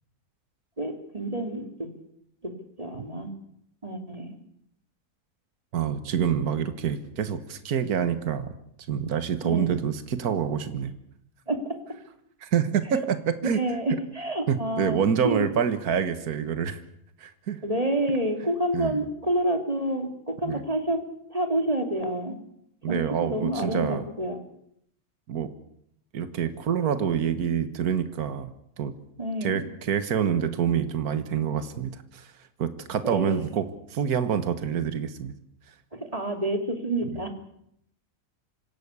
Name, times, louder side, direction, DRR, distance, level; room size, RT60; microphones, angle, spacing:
voice 1, 0.8-1.9 2.4-3.3 3.8-4.4 9.4-9.7 11.5-12.0 12.9-13.1 13.5-15.0 15.2-15.5 17.6-21.0 21.3-22.4 22.9-24.4 29.2-29.6 33.0-33.4 35.9-37.4, right 1 dB, 25° right, 5 dB, 3.0 m, -28 dB
voice 2, 5.7-8.5 8.9-10.9 12.4-13.2 13.4-13.6 14.5-16.8 17.2-17.6 18.7-19.0 20.5-20.6 22.8-24.0 25.3-25.5 26.1-28.5 28.8-28.9 29.4-32.3 32.6-35.4, right 7 dB, 75° right, 11 dB, 1.8 m, -27 dB
26.5 x 16.5 x 8.3 m, 0.73 s
omnidirectional pair, 1.6 m